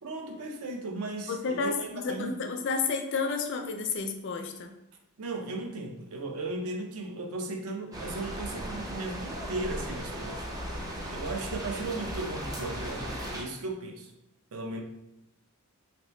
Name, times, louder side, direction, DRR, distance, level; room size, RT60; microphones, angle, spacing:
voice 1, 0.0-2.4 5.2-10.5 11.1-14.1 14.5-14.8, right 2 dB, 70° right, 3 dB, 0.6 m, -36 dB
voice 2, 1.3-4.7, left 4 dB, 55° left, 5 dB, 0.4 m, -31 dB
sound 1, 7.9-13.4, equal, 15° right, 0.5 m, -37 dB
3.0 x 2.9 x 3.1 m, 0.86 s
head